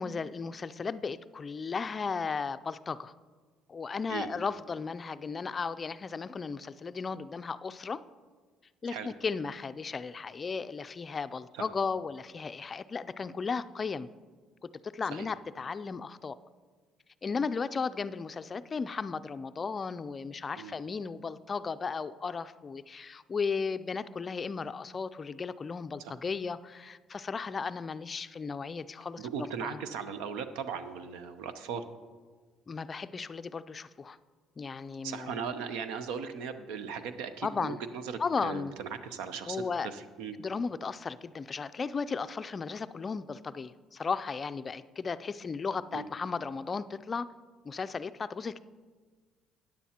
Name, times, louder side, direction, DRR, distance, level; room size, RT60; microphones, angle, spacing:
voice 1, 0.0-3.1 3.7-8.0 8.8-14.1 14.6-16.4 17.2-29.8 32.7-34.2 34.6-35.5 37.4-37.8 38.2-38.7 39.5-39.9 40.4-47.3 47.6-48.6, left 5 dB, 35° left, 13 dB, 0.3 m, -35 dB
voice 2, 29.2-31.8 35.0-40.4 45.9-46.1, right 6 dB, 90° right, 10 dB, 0.6 m, -38 dB
13.5 x 9.7 x 2.9 m, 1.5 s
cardioid pair, 90°, 0 cm